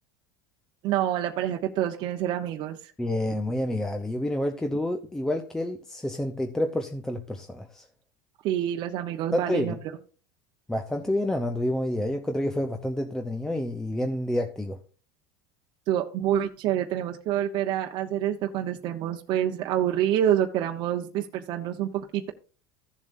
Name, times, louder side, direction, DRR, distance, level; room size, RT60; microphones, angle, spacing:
voice 1, 0.8-2.8 8.4-9.7 15.9-22.3, right 11 dB, 45° right, 1.0 m, -27 dB
voice 2, 3.0-7.9 9.3-9.8 10.7-14.8, left 1 dB, 5° left, 0.7 m, -28 dB
15.0 x 7.3 x 2.6 m
supercardioid pair, 145°, 11 cm